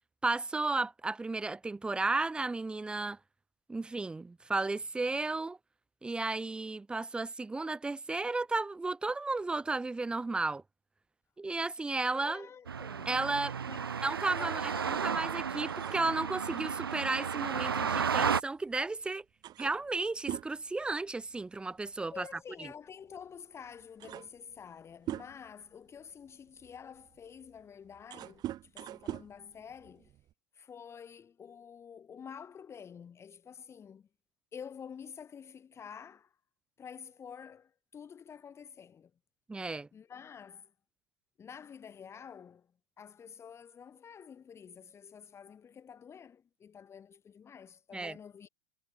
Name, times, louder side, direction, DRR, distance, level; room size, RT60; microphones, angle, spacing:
voice 1, 0.2-3.2 3.7-5.6 6.0-10.6 11.4-12.5 13.1-13.5 14.0-14.6 14.9-19.2 19.6-22.3 22.6-22.7 39.5-39.9 47.9-48.2, right 3 dB, 10° right, 0.5 m, -33 dB
voice 2, 12.1-13.1 13.7-13.9 14.4-15.1 22.1-30.1 30.5-34.1 34.5-36.3 36.8-39.1 39.9-40.7 41.4-42.7 43.0-48.5, left 7 dB, 20° left, 2.4 m, -49 dB
sound 1, 12.7-18.4, right 7 dB, 90° right, 1.5 m, -33 dB
sound 2, 15.7-18.7 19.0-19.1 19.4-21.6 21.9-22.1 23.1-23.2 23.7-25.6 26.2-30.3, right 13 dB, 35° right, 3.5 m, -44 dB
hypercardioid pair, 105°, 12 cm